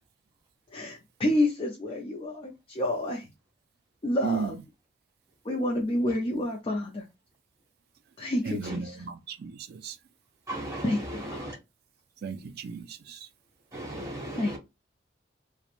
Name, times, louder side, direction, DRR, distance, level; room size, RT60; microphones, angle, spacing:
voice 1, 0.7-3.3 4.0-4.6 5.4-7.0 8.2-9.0 10.8-11.5 14.3-14.6, left 1 dB, 30° left, 0.5 m, -29 dB
voice 2, 8.5-9.9 12.2-13.2, right 5 dB, 60° right, 0.3 m, -34 dB
voice 3, 10.5-11.6 13.7-14.6, right 1 dB, 20° right, 1.3 m, -36 dB
3.0 x 2.1 x 2.4 m
head